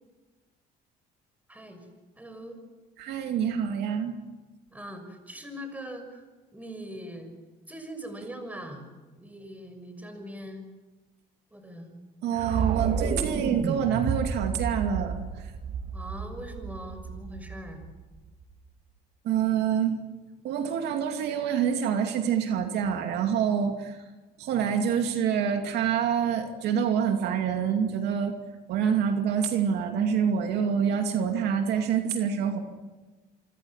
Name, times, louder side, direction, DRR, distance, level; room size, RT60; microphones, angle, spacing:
voice 1, 1.5-1.9 2.2-2.6 4.7-6.2 6.5-7.3 7.7-8.9 9.2-10.6 11.5-11.9 15.9-17.9, equal, 10° right, 6 dB, 6.5 m, -41 dB
voice 2, 3.0-4.2 12.2-15.4 19.2-20.0 20.4-24.0 24.4-28.3 28.7-32.6, right 8 dB, 80° right, 5 dB, 2.6 m, -26 dB
sound 1, 12.3-18.4, right 6 dB, 50° right, 2.3 m, -31 dB
27.0 x 25.0 x 7.4 m, 1.2 s
cardioid pair, 110°, 17 cm